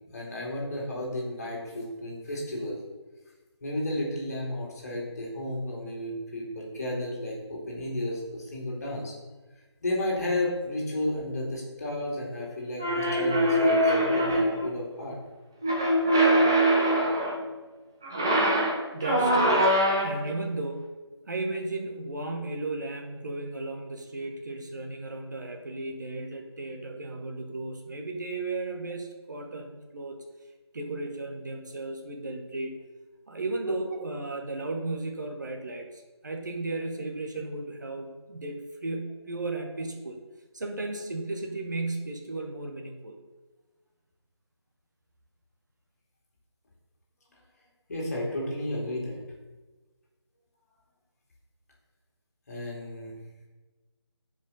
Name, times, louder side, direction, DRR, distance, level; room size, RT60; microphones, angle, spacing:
voice 1, 0.1-2.8 3.6-9.1 9.8-15.2 47.9-49.2 52.5-53.1, left 1 dB, 35° left, -3 dB, 2.5 m, -33 dB
sound 1, 12.8-14.6 15.6-17.4 18.0-20.3, right 1 dB, 10° right, 0.4 m, -23 dB
voice 2, 18.9-19.6 20.0-30.2 30.7-32.8 33.3-40.2 40.5-43.2, right 2 dB, 40° right, 3 dB, 1.1 m, -35 dB
14.5 x 5.2 x 4.0 m, 1.2 s
figure-of-eight pair, 160°, 15 cm